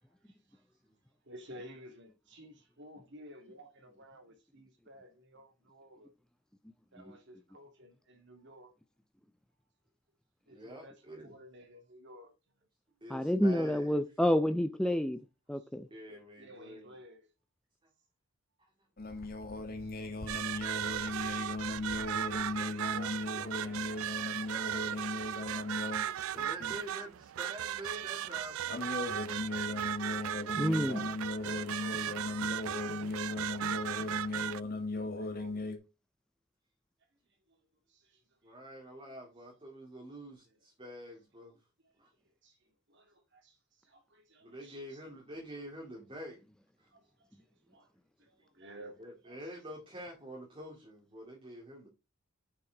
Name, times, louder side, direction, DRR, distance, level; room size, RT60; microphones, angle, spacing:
voice 1, 0.3-0.6 1.2-6.1 6.9-8.7 10.5-11.0 11.2-12.3 15.6-15.7 16.4-17.3 19.8-19.9 21.8-21.9 22.9-26.9 30.1-34.3 34.9-35.6 37.5-37.6 37.9-38.2 38.5-38.6 40.4-40.6 42.4-45.0 46.9-47.9 48.2-49.4, equal, 60° right, 2.3 m, -54 dB
voice 2, 10.5-11.4 13.0-14.0 15.9-17.0 18.6-18.7 19.1-19.3 20.1-20.3 26.3-29.0 29.4-29.6 38.4-41.6 42.0-42.1 44.4-46.4 46.8-46.9 49.0-51.9, equal, 25° right, 2.2 m, -47 dB
voice 3, 13.1-15.2 15.5-15.9 30.5-31.0, equal, 5° left, 0.4 m, -29 dB
sound 1, 19.0-26.1 26.4-26.8 28.7-35.8, left 2 dB, 45° left, 1.7 m, -37 dB
sound 2, 20.3-34.6, right 11 dB, 85° right, 0.3 m, -37 dB
7.9 x 6.0 x 3.9 m
head